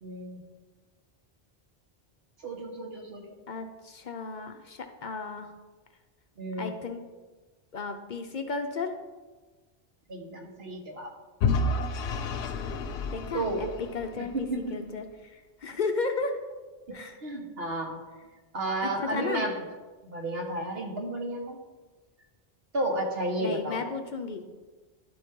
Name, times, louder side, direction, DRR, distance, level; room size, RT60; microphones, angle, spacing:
voice 1, 0.0-0.4 2.4-3.3 6.4-6.7 10.1-11.1 13.3-13.7 14.1-14.9 16.9-18.0 18.5-19.6 20.0-21.6 22.7-23.8, right 1 dB, 70° right, 1 dB, 1.5 m, -32 dB
voice 2, 3.5-5.5 6.6-7.0 7.7-8.9 13.1-16.4 16.9-17.2 18.8-19.5 23.4-24.5, left 4 dB, 55° left, 5 dB, 0.6 m, -34 dB
Vehicle / Engine, 11.4-14.4, left 3 dB, 80° left, 0.8 m, -30 dB
12.0 x 4.3 x 3.6 m, 1.3 s
omnidirectional pair, 1.1 m